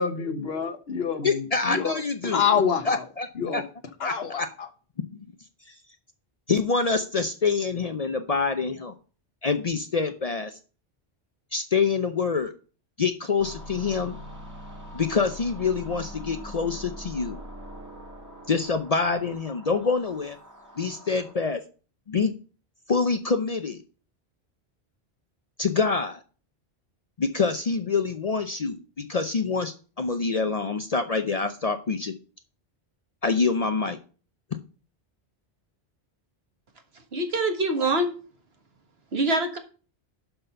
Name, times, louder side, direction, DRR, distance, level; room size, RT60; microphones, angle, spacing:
voice 1, 0.0-3.0 3.4-3.6 4.0-4.7, left 6 dB, 70° left, 1.2 m, -27 dB
voice 2, 1.2-2.4 2.8-3.6 4.0-4.5 5.7-5.8 6.5-8.9 9.4-10.6 11.5-12.5 13.0-14.2 14.9-17.4 18.5-20.4 20.8-21.6 22.1-22.3 22.9-23.8 25.6-26.2 27.2-32.1 33.2-34.0, left 4 dB, 45° left, 0.6 m, -26 dB
sound 1, 13.4-21.3, equal, 15° right, 1.9 m, -43 dB
voice 3, 36.9-38.1 39.1-39.6, right 2 dB, 70° right, 1.7 m, -25 dB
11.5 x 4.1 x 5.5 m
omnidirectional pair, 1.1 m